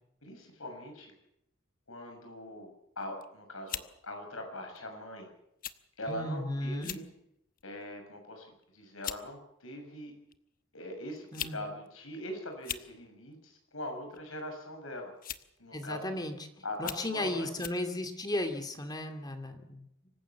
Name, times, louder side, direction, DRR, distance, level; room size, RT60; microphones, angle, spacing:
voice 1, 0.2-1.1 1.9-5.3 6.0-7.0 7.6-10.1 10.7-15.1 15.6-16.2 16.6-17.5, left 1 dB, 85° left, 4 dB, 6.7 m, -42 dB
sound 1, 3.0-3.3 3.7-3.9 4.8-4.9 5.6-5.8 6.1-6.2 6.7-7.1 7.6-7.9 8.6-8.7 9.0-9.2 10.3-10.4 11.2-11.6 11.9-12.0 12.5-12.9 14.1-14.4 15.2-15.6 16.1-16.2 16.8-17.1 17.6-17.8, left 10 dB, 45° left, 1.0 m, -39 dB
voice 2, 6.1-7.0 11.3-11.6 15.7-16.4 16.8-19.9, left 1 dB, 20° left, 6 dB, 2.4 m, -35 dB
25.5 x 15.0 x 7.3 m, 0.79 s
head